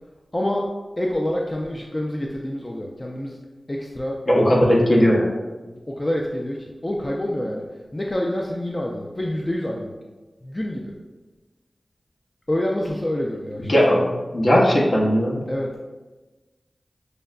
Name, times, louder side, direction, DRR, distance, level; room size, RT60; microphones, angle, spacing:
voice 1, 0.3-0.7 1.0-3.4 3.7-4.2 5.6-9.9 10.4-10.9 12.5-13.7 15.5-15.7, left 1 dB, 30° left, -1 dB, 0.4 m, -27 dB
voice 2, 4.3-5.3 13.6-15.4, equal, 60° left, -3 dB, 0.9 m, -18 dB
6.5 x 2.2 x 2.4 m, 1.2 s
cardioid pair, 45°, 0 cm